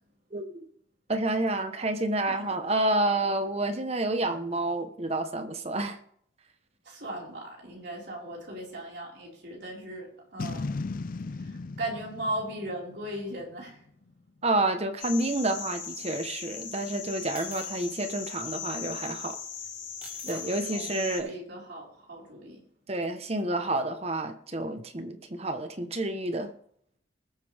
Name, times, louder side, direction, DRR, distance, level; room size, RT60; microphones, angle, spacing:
voice 1, 1.1-6.0 14.4-19.4 20.3-21.3 22.9-26.5, right 2 dB, 35° right, 7 dB, 1.1 m, -29 dB
voice 2, 2.3-2.6 6.8-10.7 11.3-13.9 20.2-22.6, right 1 dB, 60° right, -2 dB, 4.9 m, -38 dB
Boom, 10.4-13.7, left 3 dB, 45° left, 0.4 m, -36 dB
sound 1, 15.0-21.2, left 7 dB, 65° left, 3.8 m, -39 dB
sound 2, 17.3-17.9 18.9-19.1 20.0-20.4, right 1 dB, 10° right, 1.9 m, -48 dB
20.5 x 8.4 x 3.5 m, 0.65 s
head